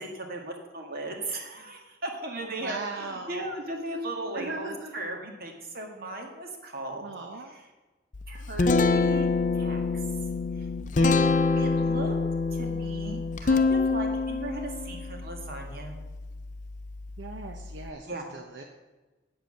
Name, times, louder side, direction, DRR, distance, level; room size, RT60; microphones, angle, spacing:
voice 1, 0.0-7.0 8.3-9.8 10.6-10.7 11.0-11.2 11.5-12.2 12.5-16.0 18.1-18.3, right 1 dB, 55° right, 2 dB, 1.9 m, -37 dB
voice 2, 2.4-3.4 4.3-4.9 7.0-7.5 12.6-12.9 17.2-18.6, right 3 dB, 80° right, 3 dB, 0.8 m, -39 dB
Guitar, 8.1-17.9, left 3 dB, 45° left, 0.6 m, -27 dB
8.3 x 8.0 x 6.5 m, 1.2 s
head